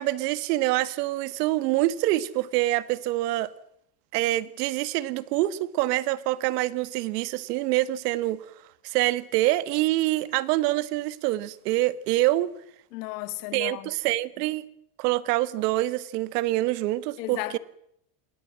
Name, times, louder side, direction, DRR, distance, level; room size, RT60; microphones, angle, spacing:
voice 1, 0.0-3.5 4.1-8.5 8.8-12.5 13.5-14.7 15.0-17.6, right 17 dB, 85° right, 1.7 m, -26 dB
voice 2, 12.9-13.9 17.2-17.6, left 17 dB, 85° left, 2.2 m, -34 dB
27.0 x 22.5 x 7.6 m
cardioid pair, 145°, 46 cm